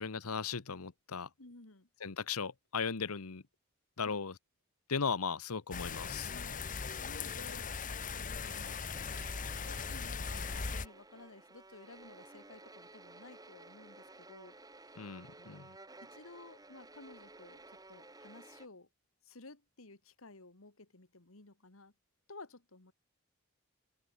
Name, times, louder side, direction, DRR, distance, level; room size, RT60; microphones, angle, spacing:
voice 1, 0.0-1.3 2.0-3.4 4.0-4.4 4.9-6.3 15.0-15.8, left 5 dB, 85° left, 1.0 m, -37 dB
voice 2, 1.4-1.9 4.0-4.2 6.2-9.2 9.6-14.6 15.4-15.6 16.0-18.9 19.2-21.9 22.3-22.9, left 2 dB, 70° left, 2.2 m, -55 dB
sound 1, 5.7-10.9, left 5 dB, 35° left, 1.0 m, -39 dB
sound 2, 8.5-18.7, right 2 dB, 15° right, 5.1 m, -55 dB
open air
head